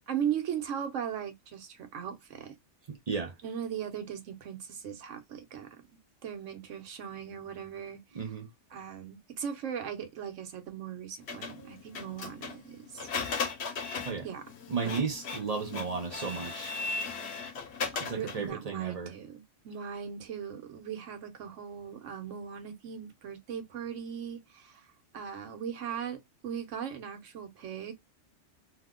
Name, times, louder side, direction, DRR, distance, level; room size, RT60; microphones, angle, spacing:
voice 1, 0.1-2.5 3.4-5.8 6.2-8.4 8.7-13.0 14.2-14.4 14.8-15.0 18.1-24.9 25.1-27.9, right 8 dB, 85° right, 1.1 m, -38 dB
voice 2, 2.9-3.3 8.1-8.5 14.0-14.3 14.7-16.7 18.0-19.1, right 5 dB, 50° right, 0.5 m, -34 dB
Printer, 11.3-18.5, left 4 dB, 65° left, 1.0 m, -37 dB
2.8 x 2.0 x 3.5 m
omnidirectional pair, 1.2 m